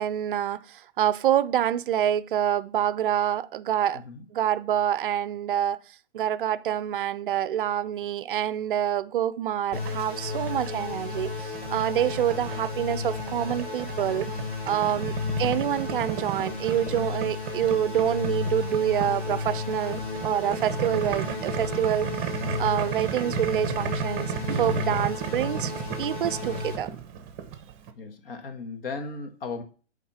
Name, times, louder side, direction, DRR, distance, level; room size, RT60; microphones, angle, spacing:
voice 1, 0.0-4.0 4.3-5.8 6.1-14.3 14.7-22.3 22.6-25.7 26.0-26.9, right 10 dB, 50° right, 0.5 m, -27 dB
sound 1, 9.7-26.8, left 4 dB, 30° left, 2.8 m, -33 dB
Boiling, 9.8-27.9, right 8 dB, 25° right, 0.8 m, -35 dB
voice 2, 14.8-15.1 27.9-29.6, left 4 dB, 55° left, 1.6 m, -36 dB
8.4 x 3.6 x 5.5 m
hypercardioid pair, 135°, 34 cm